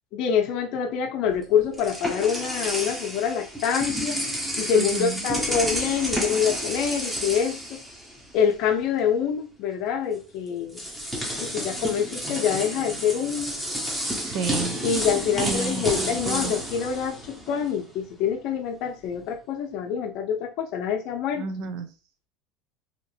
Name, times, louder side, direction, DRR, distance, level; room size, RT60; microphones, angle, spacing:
voice 1, 0.1-4.2 4.6-7.8 8.3-10.8 11.4-13.5 14.8-21.5, left 7 dB, 60° left, 0.6 m, -26 dB
sound 1, 1.3-8.5 8.8-9.0 10.1-10.2 10.7-17.9, equal, 5° right, 0.8 m, -30 dB
voice 2, 4.7-5.2 14.2-14.8 15.4-16.5 21.4-21.9, right 5 dB, 65° right, 0.5 m, -31 dB
2.8 x 2.5 x 2.7 m
supercardioid pair, 115°, 0 cm